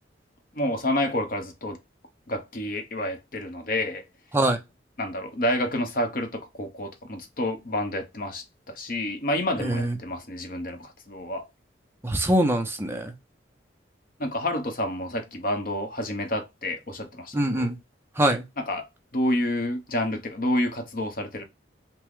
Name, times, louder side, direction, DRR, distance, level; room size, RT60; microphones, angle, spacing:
voice 1, 0.5-1.8 2.3-4.0 5.0-11.5 14.2-17.7 18.6-18.9 19.1-21.4, left 1 dB, 50° left, 1.0 m, -29 dB
voice 2, 9.6-9.9 12.0-13.1 17.3-17.8 18.2-18.4, right 1 dB, 15° right, 0.7 m, -23 dB
5.9 x 2.2 x 3.6 m
head